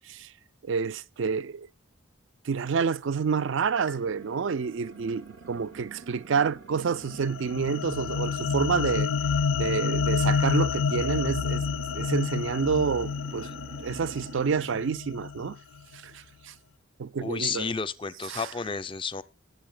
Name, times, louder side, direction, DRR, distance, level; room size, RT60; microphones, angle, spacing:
voice 1, 0.6-1.7 2.4-9.1 9.6-11.6 11.9-13.5 13.8-15.6 16.0-16.5 17.0-17.7 18.3-18.5, right 5 dB, 65° right, 0.4 m, -28 dB
sound 1, 3.9-14.8, right 4 dB, 85° right, 3.4 m, -46 dB
sound 2, 7.1-15.5, left 5 dB, 80° left, 0.4 m, -29 dB
voice 2, 17.2-19.2, left 5 dB, 25° left, 0.5 m, -32 dB
19.5 x 7.7 x 2.2 m
head